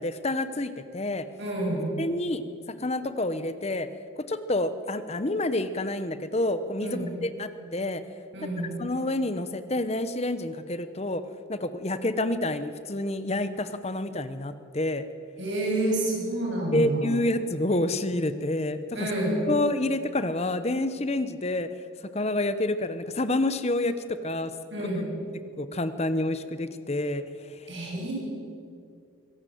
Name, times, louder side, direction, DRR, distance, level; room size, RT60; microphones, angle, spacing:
voice 1, 0.0-1.2 2.0-2.4 2.7-3.9 4.3-8.0 8.8-11.2 11.5-15.0 16.7-19.0 19.5-21.7 22.1-24.0 24.2-24.5 25.6-27.2 27.5-28.0, left 1 dB, 30° left, 12 dB, 0.9 m, -28 dB
voice 2, 1.4-1.8 6.8-7.1 8.3-8.8 15.4-17.1 18.9-19.3 24.7-25.0 27.7-28.1, right 1 dB, 55° right, -2 dB, 7.8 m, -29 dB
24.0 x 16.5 x 7.9 m, 2.4 s
head